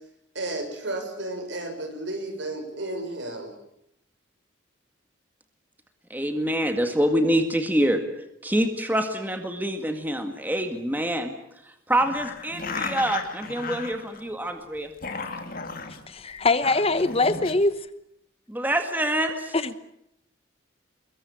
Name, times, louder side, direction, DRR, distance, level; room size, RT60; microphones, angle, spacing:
voice 1, 0.3-3.5, right 2 dB, 70° right, 6.2 m, -32 dB
voice 2, 6.1-8.0 8.4-11.3 11.6-14.9 18.5-19.6, equal, 10° right, 1.9 m, -26 dB
sound 1, 12.0-14.4 14.8-16.0 16.5-17.5, left 4 dB, 50° left, 2.7 m, -35 dB
voice 3, 16.1-17.8 19.5-19.6, left 3 dB, 30° left, 1.0 m, -22 dB
24.5 x 22.0 x 8.6 m
head